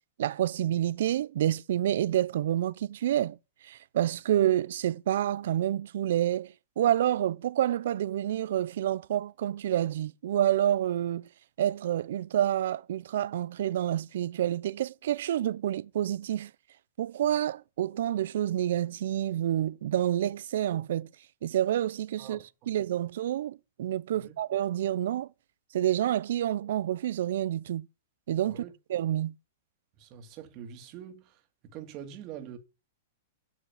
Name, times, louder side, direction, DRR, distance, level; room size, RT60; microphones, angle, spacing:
voice 1, 0.2-3.4 3.6-11.3 11.6-16.5 17.0-21.1 21.4-22.4 22.7-25.3 25.7-27.9 28.3-28.6 28.9-29.3, right 11 dB, 70° right, 0.5 m, -28 dB
voice 2, 22.2-22.7 24.1-24.4 28.4-28.7 30.0-32.6, right 9 dB, 40° right, 2.2 m, -45 dB
9.3 x 6.7 x 8.8 m
hypercardioid pair, 130°, 0 cm